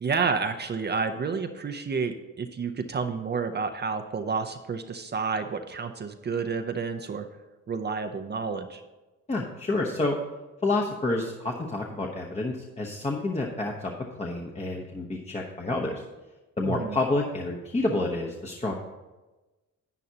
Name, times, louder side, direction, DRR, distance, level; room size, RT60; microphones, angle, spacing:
voice 1, 0.0-7.3 7.7-8.8 16.6-17.0, right 5 dB, 35° right, 6 dB, 0.6 m, -30 dB
voice 2, 9.3-10.2 10.6-13.9 14.2-16.0 16.6-18.7, left 2 dB, 20° left, -2 dB, 1.0 m, -29 dB
11.0 x 9.0 x 2.8 m, 1.1 s
cardioid pair, 90°, 30 cm